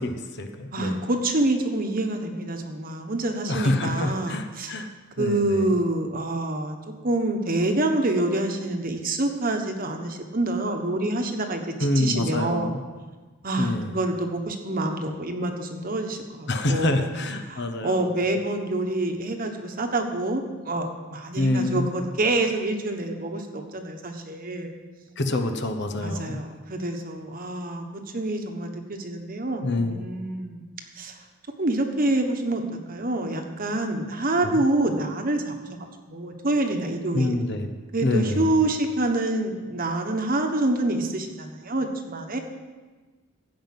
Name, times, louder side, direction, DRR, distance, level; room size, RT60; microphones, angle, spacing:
voice 1, 0.0-1.0 3.4-4.9 5.2-5.7 11.8-12.8 13.6-14.0 16.5-18.1 21.3-21.9 25.2-26.4 29.6-30.0 34.4-34.6 37.1-37.7 38.0-38.5, left 2 dB, 50° left, 7 dB, 1.0 m, -26 dB
voice 2, 0.7-4.7 5.2-6.8 7.0-12.8 13.4-17.0 17.5-24.7 26.0-30.6 31.0-31.1 31.6-37.4 37.9-42.4, right 2 dB, 40° right, 4 dB, 1.2 m, -27 dB
16.0 x 5.4 x 7.5 m, 1.3 s
head